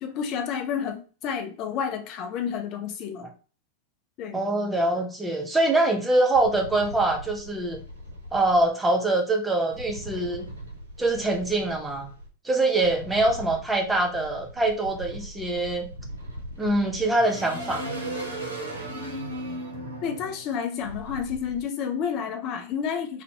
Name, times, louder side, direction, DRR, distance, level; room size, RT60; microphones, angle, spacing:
voice 1, 0.0-3.3 4.2-4.4 20.0-23.2, left 7 dB, 40° left, 5 dB, 0.4 m, -30 dB
voice 2, 4.3-7.8 8.3-10.5 11.0-12.1 12.4-15.9 16.6-17.8, right 2 dB, 10° right, 3 dB, 0.5 m, -24 dB
sound 1, 6.3-8.6 9.7-12.3 12.8-21.6, right 1 dB, 70° right, 0.7 m, -38 dB
2.5 x 2.1 x 2.7 m, 0.38 s
figure-of-eight pair, 90°, 0 cm